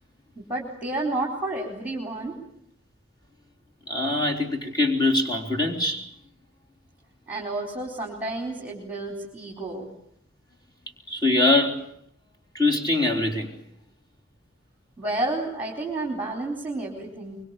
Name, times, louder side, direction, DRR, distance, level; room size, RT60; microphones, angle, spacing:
voice 1, 0.5-2.4 7.3-9.9 15.0-17.4, right 2 dB, 10° right, 0 dB, 4.3 m, -30 dB
voice 2, 3.9-6.0 11.1-11.8 12.5-13.5, left 2 dB, 20° left, 1 dB, 3.9 m, -23 dB
24.5 x 24.0 x 8.5 m, 0.69 s
head